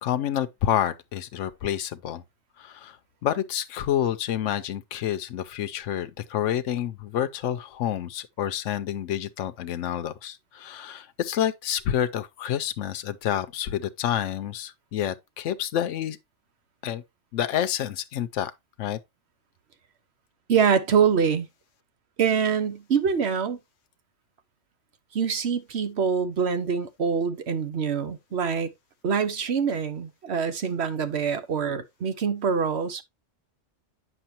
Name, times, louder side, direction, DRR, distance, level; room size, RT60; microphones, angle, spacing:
voice 1, 0.0-2.2 2.6-3.0 3.2-16.2 16.8-17.0 17.3-18.5 18.8-19.0, left 10 dB, 85° left, 1.0 m, -28 dB
voice 2, 20.5-21.5 22.2-23.6 25.1-28.7 29.0-33.0, right 6 dB, 65° right, 1.2 m, -25 dB
9.0 x 6.3 x 2.9 m
omnidirectional pair, 1.2 m